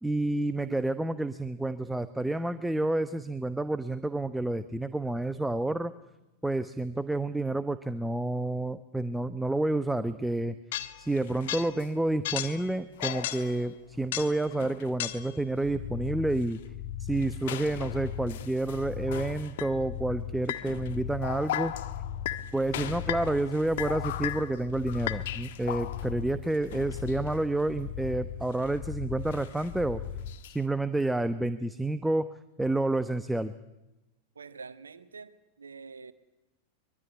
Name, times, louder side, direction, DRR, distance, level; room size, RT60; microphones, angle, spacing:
voice 1, 0.0-5.9 6.4-10.6 11.0-16.6 17.0-21.7 22.5-30.0 30.5-32.3 32.6-33.5, right 2 dB, 5° right, 12 dB, 1.0 m, -29 dB
sound 1, 10.7-11.9 12.2-15.4 16.4-16.6 17.2-19.7 20.5-26.2 26.5-27.4 28.5-28.8 29.3-30.6, left 13 dB, 55° left, 1.6 m, -37 dB
sound 2, 15.6-30.4, left 9 dB, 35° left, 2.1 m, -39 dB
voice 2, 34.3-36.1, right 5 dB, 75° right, 12 dB, 1.6 m, -46 dB
23.5 x 23.0 x 9.8 m, 0.98 s
figure-of-eight pair, 90°, 0 cm